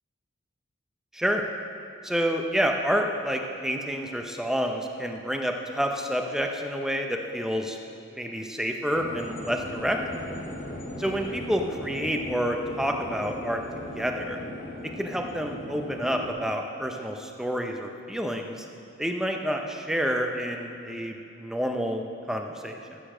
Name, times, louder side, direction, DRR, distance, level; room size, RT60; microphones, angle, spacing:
voice 1, 2.0-7.8 8.1-10.0 11.0-13.6 14.0-14.4 15.0-18.7 19.0-23.0, equal, ahead, 3 dB, 0.7 m, -29 dB
sound 1, 8.9-16.3, left 1 dB, 75° left, 2.3 m, -38 dB
14.5 x 6.9 x 6.2 m, 2.8 s
head